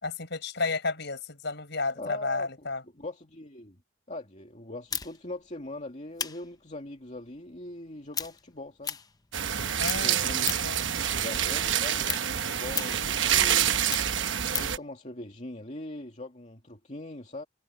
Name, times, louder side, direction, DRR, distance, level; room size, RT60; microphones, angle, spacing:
voice 1, 0.0-2.8 9.8-10.2 10.6-11.0, left 3 dB, 60° left, 6.9 m, -32 dB
voice 2, 2.0-3.8 4.1-9.0 9.7-10.6 11.1-13.8 14.6-17.5, left 2 dB, 35° left, 2.4 m, -41 dB
sound 1, 4.9-9.6 9.8-10.8 11.2-14.8, left 7 dB, 20° left, 0.8 m, -36 dB
sound 2, 9.3-14.8, right 9 dB, 65° right, 1.1 m, -27 dB
head